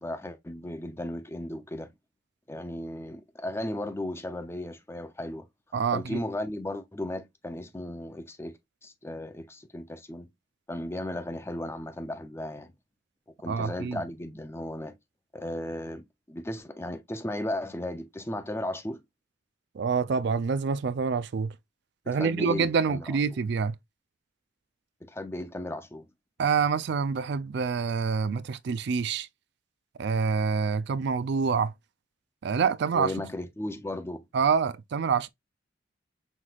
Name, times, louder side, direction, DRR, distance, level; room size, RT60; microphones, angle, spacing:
voice 1, 0.0-1.9 2.5-5.5 5.9-10.3 10.7-12.7 13.4-15.0 15.3-19.0 22.1-23.1 25.0-26.1 32.9-34.2, left 1 dB, 15° left, 0.5 m, -35 dB
voice 2, 5.7-6.2 13.5-14.0 19.8-21.5 22.1-23.7 26.4-29.3 30.0-31.7 32.4-33.1 34.3-35.3, right 5 dB, 60° right, 0.4 m, -26 dB
5.8 x 3.1 x 2.4 m
head